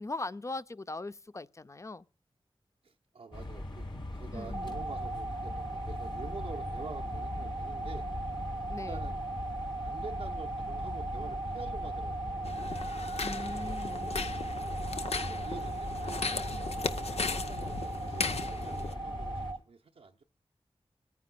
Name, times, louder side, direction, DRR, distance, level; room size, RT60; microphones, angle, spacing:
voice 1, 0.0-2.0 4.3-4.8 8.7-9.0 13.2-14.1, left 2 dB, 30° left, 0.5 m, -40 dB
voice 2, 2.8-3.9 4.1-8.1 8.9-9.2 9.8-12.5 14.9-15.2 15.4-16.3 17.3-20.2, right 4 dB, 80° right, 0.7 m, -47 dB
sound 1, 3.3-19.5, left 1 dB, 45° left, 2.0 m, -40 dB
sound 2, 4.5-19.6, right 3 dB, 35° right, 0.6 m, -39 dB
sound 3, 12.4-18.9, left 4 dB, 80° left, 0.7 m, -37 dB
24.0 x 9.3 x 2.2 m
wide cardioid pair, 50°, 10 cm